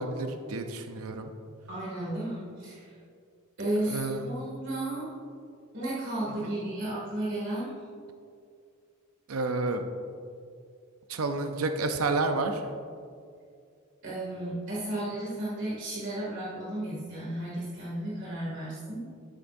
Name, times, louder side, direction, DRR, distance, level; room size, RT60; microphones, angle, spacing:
voice 1, 0.0-1.3 3.9-4.2 6.4-6.5 9.3-9.8 11.1-12.6, right 3 dB, 75° right, 6 dB, 0.6 m, -30 dB
voice 2, 1.7-3.0 3.6-5.1 5.7-7.7 14.0-19.0, right 1 dB, 55° right, -8 dB, 2.3 m, -33 dB
13.0 x 8.9 x 2.6 m, 2.3 s
head